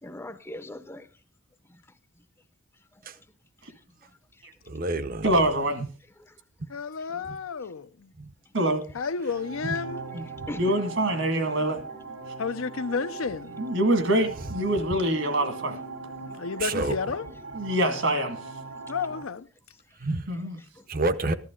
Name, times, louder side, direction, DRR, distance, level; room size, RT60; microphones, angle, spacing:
voice 1, 0.0-1.1 1.7-1.8 2.9-3.3 3.7-3.8 4.3-4.4 6.2-6.3 7.6-7.7 8.5-8.6 10.1-10.9 16.3-16.4 20.7-20.9, left 1 dB, 10° left, 0.6 m, -42 dB
voice 2, 4.7-5.9 7.3-7.4 8.2-8.3 9.6-9.8 10.4-10.5 16.6-17.0 20.0-20.2 20.9-21.3, right 2 dB, 45° right, 0.7 m, -29 dB
voice 3, 5.2-5.8 8.5-8.8 10.1-10.2 10.6-11.8 13.6-15.8 17.5-18.4 20.3-20.6, right 1 dB, 70° right, 2.0 m, -25 dB
voice 4, 6.7-8.1 8.9-10.1 12.4-13.6 16.4-17.3 18.9-19.5, left 5 dB, 85° left, 0.6 m, -31 dB
sound 1, 9.2-19.2, right 3 dB, 85° right, 3.3 m, -40 dB
14.5 x 11.5 x 3.7 m
head